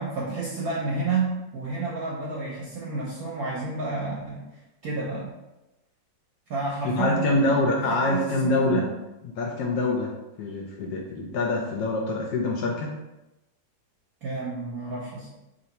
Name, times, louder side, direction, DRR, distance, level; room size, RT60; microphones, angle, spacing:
voice 1, 0.0-5.3 6.5-8.9 14.2-15.3, right 3 dB, 65° right, -4 dB, 1.0 m, -30 dB
voice 2, 6.8-8.8 9.4-10.1 10.4-12.9, left 2 dB, 70° left, 0 dB, 1.0 m, -25 dB
3.1 x 2.6 x 4.1 m, 0.99 s
omnidirectional pair, 2.1 m